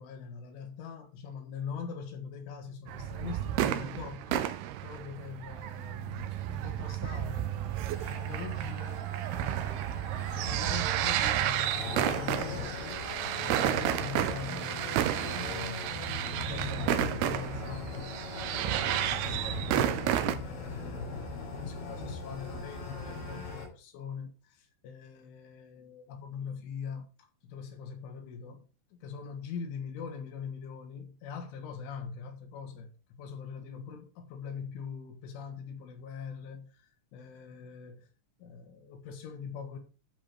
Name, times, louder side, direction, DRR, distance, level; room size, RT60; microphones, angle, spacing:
voice 1, 0.0-4.5 4.8-9.1 9.4-10.1 10.3-13.0 13.4-16.0 16.5-18.2 18.7-38.1 38.4-39.8, left 6 dB, 80° left, 4.1 m, -43 dB
sound 1, 2.9-20.4, right 12 dB, 85° right, 2.3 m, -32 dB
sound 2, 7.8-23.6, left 3 dB, 55° left, 5.2 m, -40 dB
12.5 x 5.3 x 4.6 m
omnidirectional pair, 5.5 m